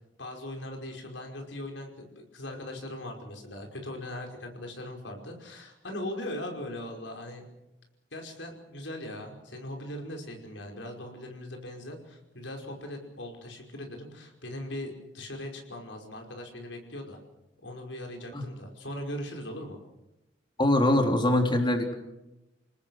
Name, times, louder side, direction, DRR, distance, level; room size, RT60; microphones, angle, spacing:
voice 1, 0.2-7.4 8.1-17.2 17.6-19.8, left 1 dB, 85° left, 2 dB, 5.3 m, -39 dB
voice 2, 20.6-21.9, left 1 dB, 25° left, 4 dB, 3.4 m, -23 dB
29.0 x 19.0 x 6.4 m, 0.92 s
head